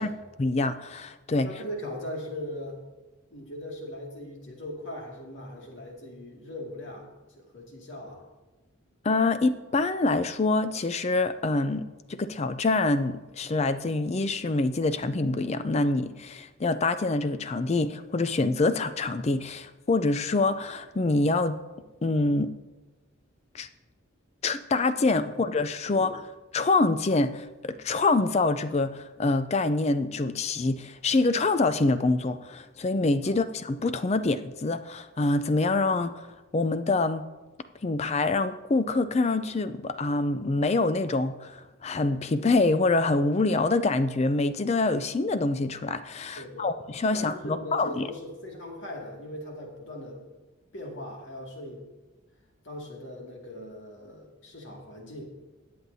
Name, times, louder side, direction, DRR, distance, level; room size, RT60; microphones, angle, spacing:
voice 1, 0.4-1.5 9.0-21.6 22.0-22.5 23.5-23.7 24.4-26.2 26.5-36.3 36.5-37.2 37.8-48.1, left 3 dB, 30° left, 12 dB, 0.4 m, -26 dB
voice 2, 1.4-2.8 3.3-8.2 25.2-25.3 25.9-26.1 33.2-33.4 46.4-46.7 47.1-50.2 50.7-51.8 52.6-55.2, left 1 dB, 60° left, -1 dB, 2.3 m, -40 dB
18.5 x 7.7 x 2.7 m, 1.1 s
head